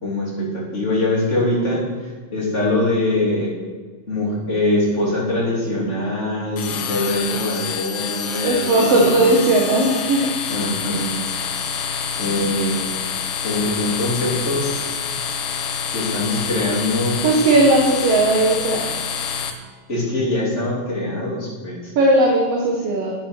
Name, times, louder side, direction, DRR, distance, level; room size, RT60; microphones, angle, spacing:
voice 1, 0.0-3.5 4.1-9.4 10.4-11.1 12.1-12.9 13.4-15.0 15.9-17.3 19.9-21.9, left 1 dB, 20° left, -5 dB, 3.3 m, -23 dB
sound 1, 6.6-19.5, left 7 dB, 75° left, 2.5 m, -27 dB
voice 2, 8.4-10.3 17.2-19.0 22.0-23.2, right 2 dB, 55° right, -1 dB, 2.0 m, -17 dB
10.0 x 9.2 x 6.3 m, 1.5 s
omnidirectional pair, 4.0 m